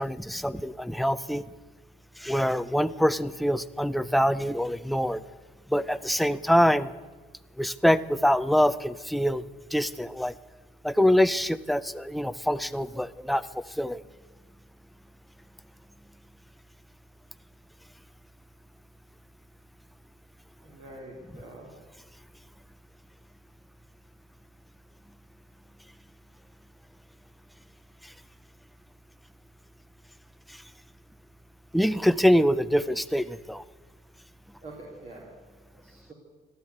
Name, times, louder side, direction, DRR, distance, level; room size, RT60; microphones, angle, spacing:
voice 1, 0.0-1.4 2.2-5.2 5.7-6.9 7.6-9.4 9.7-10.3 10.8-13.4 13.8-14.0 31.7-33.6, equal, ahead, 13 dB, 0.5 m, -24 dB
voice 2, 20.6-21.7 34.6-35.3 35.7-36.1, right 2 dB, 45° right, -3 dB, 3.2 m, -45 dB
14.5 x 12.0 x 8.1 m, 1.3 s
cardioid pair, 110°, 17 cm